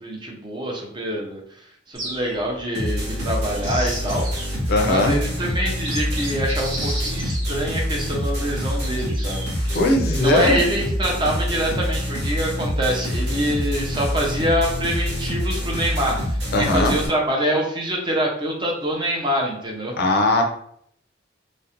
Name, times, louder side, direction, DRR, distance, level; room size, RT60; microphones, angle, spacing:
voice 1, 0.0-1.4 1.9-4.3 4.9-9.4 10.0-19.9, equal, 25° right, -1 dB, 0.5 m, -25 dB
sound 1, 2.0-2.6 3.3-4.6 5.2-5.3 5.7-8.0 8.8-9.8, right 1 dB, 90° right, 1.0 m, -34 dB
sound 2, 2.7-17.1, equal, 60° right, 0.9 m, -26 dB
voice 2, 4.7-5.1 9.7-10.6 16.5-17.0 20.0-20.4, left 2 dB, 50° left, 4 dB, 0.4 m, -19 dB
2.4 x 2.0 x 2.8 m, 0.65 s
head